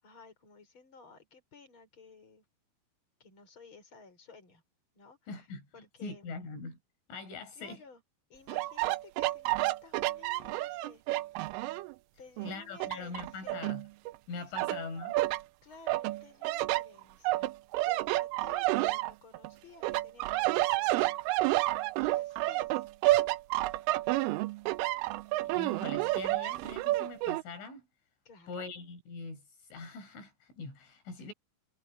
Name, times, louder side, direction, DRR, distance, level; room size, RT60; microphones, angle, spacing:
voice 1, 0.0-2.5 3.2-4.6 4.9-6.3 7.5-8.0 8.3-11.0 12.2-13.7 14.3-14.7 15.6-17.5 17.8-21.6 22.0-22.9 28.3-28.7 31.2-31.3, left 4 dB, 25° left, 7.0 m, -55 dB
voice 2, 5.3-5.6 6.0-6.8 7.1-7.8 12.4-13.8 14.3-15.2 25.4-27.9 28.5-29.4 29.7-31.3, left 4 dB, 75° left, 9.3 m, -42 dB
sound 1, 8.5-11.9 12.4-14.2 14.6-15.4 15.9-19.5 19.8-27.4, right 18 dB, 85° right, 3.3 m, -30 dB
omnidirectional pair, 5.6 m